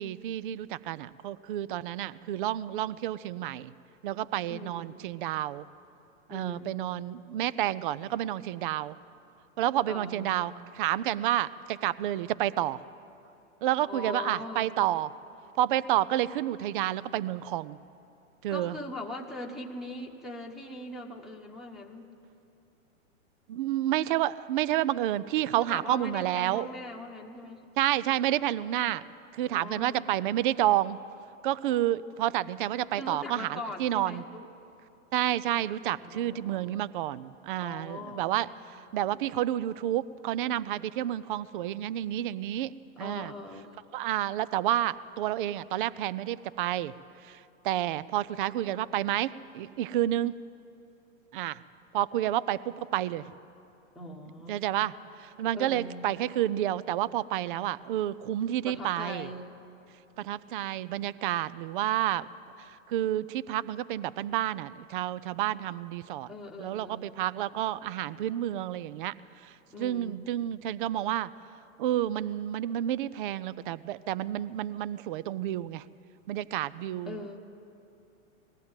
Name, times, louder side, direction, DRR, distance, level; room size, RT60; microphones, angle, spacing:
voice 1, 0.0-3.7 4.0-5.6 6.3-9.0 9.6-12.8 13.6-15.1 15.6-17.8 18.4-18.8 23.5-26.7 27.8-29.0 29.3-31.0 31.4-34.2 35.1-42.7 43.0-43.3 43.9-46.9 47.2-50.4 51.3-51.6 51.9-53.3 54.5-59.3 60.2-62.3 62.6-66.3 66.6-71.3 71.8-75.9 76.3-77.3, right 13 dB, 40° right, 19 dB, 0.4 m, -30 dB
voice 2, 4.5-5.1 6.3-6.8 9.9-10.3 13.9-14.7 18.5-22.1 25.6-27.6 29.4-30.0 32.9-34.5 36.0-36.8 37.6-38.4 43.0-43.8 53.9-54.6 55.5-55.9 58.6-59.4 66.3-67.2 69.7-70.2 77.1-77.4, left 1 dB, ahead, -3 dB, 1.2 m, -41 dB
19.5 x 15.0 x 8.8 m, 2.8 s
hypercardioid pair, 145°, 40 cm